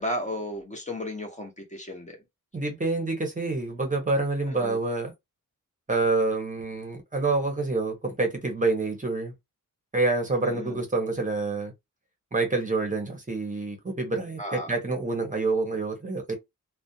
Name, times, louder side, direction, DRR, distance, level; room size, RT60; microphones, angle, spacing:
voice 1, 0.0-2.2 4.5-4.8 10.4-10.8 14.4-14.7, left 1 dB, 20° left, 0.7 m, -34 dB
voice 2, 2.5-5.1 5.9-9.3 9.9-11.7 12.3-16.3, right 3 dB, 25° right, 0.8 m, -27 dB
2.4 x 2.1 x 2.6 m
wide cardioid pair, 130°, 33 cm